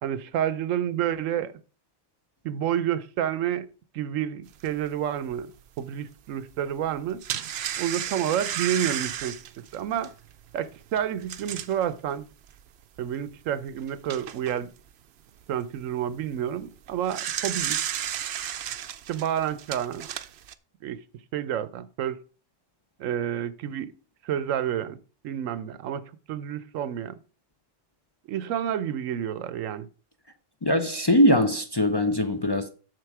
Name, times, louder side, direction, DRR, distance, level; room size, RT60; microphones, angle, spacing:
voice 1, 0.0-1.5 2.4-3.7 3.9-5.5 5.8-7.2 7.8-9.4 9.7-10.1 10.5-12.3 13.0-14.7 15.5-17.8 19.1-20.1 20.8-21.0 21.3-22.2 23.0-23.9 24.2-25.0 25.2-27.2 28.3-29.9, right 10 dB, 90° right, 1.1 m, -29 dB
sound 1, 4.7-4.8 5.3-5.4 6.9-11.8 12.5-12.6 13.0-13.1 13.7-14.6 16.8-20.5, right 10 dB, 60° right, 0.8 m, -33 dB
voice 2, 30.6-32.7, equal, 25° left, 0.5 m, -21 dB
7.7 x 6.7 x 4.7 m
omnidirectional pair, 1.3 m